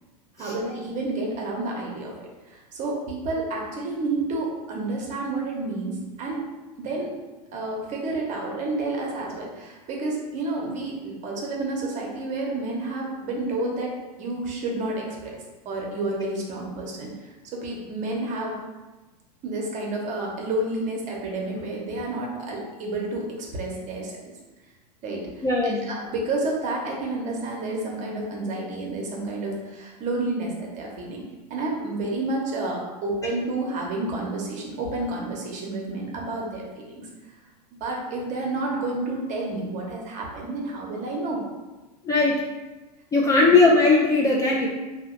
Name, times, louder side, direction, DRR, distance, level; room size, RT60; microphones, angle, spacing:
voice 1, 0.4-2.1 2.5-6.4 6.8-7.1 7.5-13.9 14.2-18.6 19.4-24.1 25.0-31.2 31.5-37.1 37.7-41.4 43.4-43.5, right 2 dB, 35° right, -1 dB, 0.8 m, -30 dB
voice 2, 25.4-25.9 42.0-42.4 43.1-44.7, left 3 dB, 15° left, -3 dB, 0.3 m, -19 dB
2.7 x 2.1 x 3.7 m, 1.2 s
hypercardioid pair, 105°, 21 cm